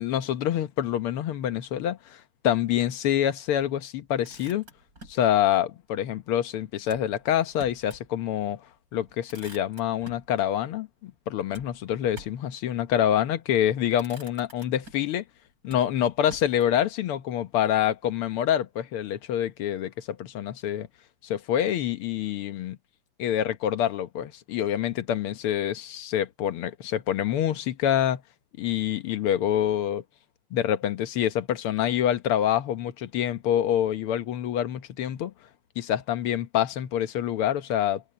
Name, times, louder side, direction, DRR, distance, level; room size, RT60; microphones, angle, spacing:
voice 1, 0.0-4.7 5.1-8.6 8.9-15.3 15.6-20.9 21.2-22.8 23.2-28.2 28.6-30.0 30.5-35.3 35.8-38.0, left 10 dB, 90° left, 1.9 m, -26 dB
Motor vehicle (road), 4.0-5.3 6.8-8.1 8.5-8.6 8.9-10.3 11.5-12.5 13.4-13.6 13.9-15.2 15.7-16.9, right 1 dB, 40° right, 8.3 m, -49 dB
omnidirectional pair, 2.3 m